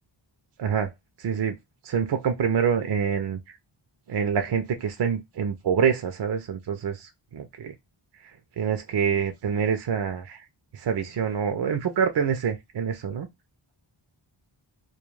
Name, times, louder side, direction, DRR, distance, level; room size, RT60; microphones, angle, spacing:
voice 1, 0.6-0.9 1.2-1.6 1.8-3.4 4.1-7.7 8.6-10.4 10.7-13.3, right 7 dB, 55° right, 0.5 m, -26 dB
2.3 x 2.2 x 3.1 m
wide cardioid pair, 80°, 49 cm